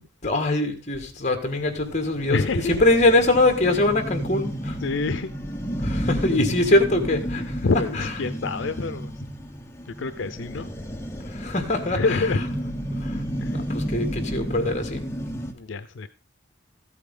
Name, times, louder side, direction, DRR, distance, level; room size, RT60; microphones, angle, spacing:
voice 1, 0.2-2.4 2.7-4.8 5.8-7.7 8.0-8.1 11.2-12.3 13.0-15.1, left 2 dB, 40° left, 6 dB, 1.8 m, -23 dB
sound 1, 1.5-15.5, equal, 15° left, 1.0 m, -32 dB
voice 2, 2.2-2.8 3.6-3.8 4.8-5.3 7.6-9.3 9.9-10.7 11.9-12.4 13.4-13.6 15.5-16.1, left 4 dB, 80° left, 12 dB, 0.5 m, -27 dB
14.0 x 8.3 x 3.8 m, 0.39 s
head